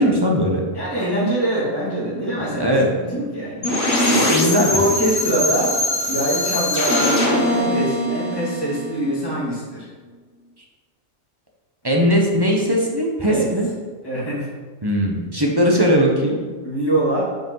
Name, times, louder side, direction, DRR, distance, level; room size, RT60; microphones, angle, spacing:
voice 1, 0.0-0.6 2.1-2.9 4.1-4.7 11.8-13.7 14.8-16.4, equal, 20° right, -1 dB, 0.9 m, -19 dB
voice 2, 0.7-2.8 3.1-3.7 4.7-5.8 6.1-9.9 13.3-13.5 14.0-14.5 16.6-17.2, right 1 dB, 15° left, -9 dB, 2.5 m, -23 dB
sound 1, 3.6-9.4, left 1 dB, 65° left, 2.0 m, -21 dB
6.1 x 5.0 x 5.6 m, 1.4 s
omnidirectional pair, 1.5 m